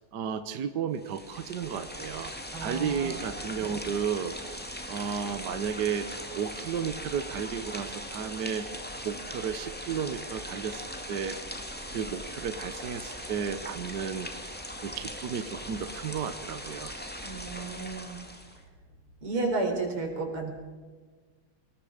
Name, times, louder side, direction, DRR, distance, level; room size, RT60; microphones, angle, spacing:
voice 1, 0.0-2.3 2.6-4.4 4.9-6.1 6.4-8.7 9.0-11.4 11.9-14.3 14.8-16.9, right 7 dB, 55° right, 10 dB, 1.5 m, -33 dB
sound 1, 0.9-18.6, equal, 5° left, 2.1 m, -40 dB
voice 2, 2.5-3.3 17.2-18.2 19.2-20.5, right 3 dB, 85° right, 3 dB, 5.2 m, -32 dB
26.0 x 20.0 x 5.0 m, 1.4 s
omnidirectional pair, 2.4 m